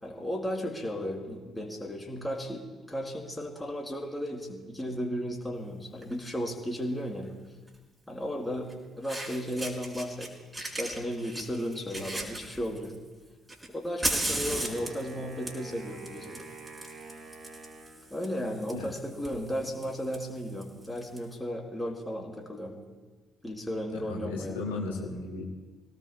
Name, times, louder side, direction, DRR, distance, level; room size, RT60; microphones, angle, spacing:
voice 1, 0.0-2.6 2.9-7.3 8.1-10.3 10.6-13.0 13.7-16.5 18.1-22.8 23.4-24.6, equal, 10° left, -1 dB, 4.3 m, -35 dB
Fire, 6.0-6.2 7.7-7.8 8.7-8.8 9.0-10.3 10.5-13.0 13.5-21.2, right 1 dB, 20° right, 5.5 m, -37 dB
Wind instrument woodwind instrument, 14.3-18.5, right 3 dB, 50° right, 2.3 m, -47 dB
voice 2, 23.9-25.5, left 3 dB, 75° left, -3 dB, 1.8 m, -35 dB
27.0 x 18.0 x 2.2 m, 1.3 s
figure-of-eight pair, 45°, 0 cm